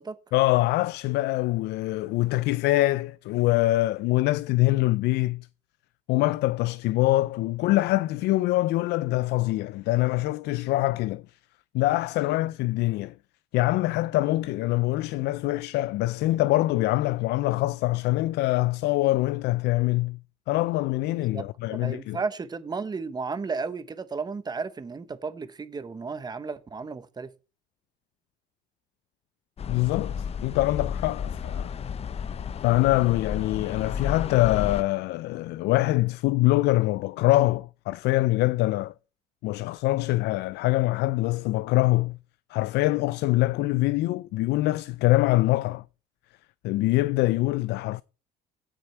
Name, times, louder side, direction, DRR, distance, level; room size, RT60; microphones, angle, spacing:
voice 1, 0.3-5.5 6.1-11.2 11.7-13.1 13.5-20.2 20.5-22.2 29.7-31.7 32.6-38.9 39.4-42.2 42.5-45.8 46.6-48.0, left 18 dB, 80° left, 0.4 m, -24 dB
voice 2, 21.2-27.3, right 4 dB, 25° right, 1.2 m, -34 dB
sound 1, 29.6-34.8, left 7 dB, 35° left, 0.6 m, -32 dB
16.0 x 6.2 x 4.5 m
cardioid pair, 110°, 17 cm